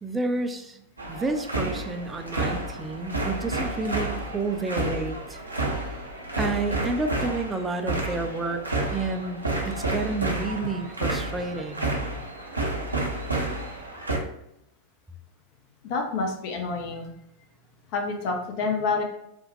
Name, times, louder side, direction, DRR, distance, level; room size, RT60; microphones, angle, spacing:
voice 1, 0.0-0.8 1.1-5.4 6.4-8.6 8.9-9.4 9.6-11.9, right 3 dB, 10° right, 6 dB, 0.3 m, -30 dB
sound 1, 1.0-14.2, right 2 dB, 80° right, 0.5 m, -30 dB
voice 2, 15.8-17.1 17.9-19.0, left 4 dB, 45° left, 3 dB, 0.5 m, -28 dB
3.3 x 2.1 x 2.9 m, 0.81 s
figure-of-eight pair, 90°, 0 cm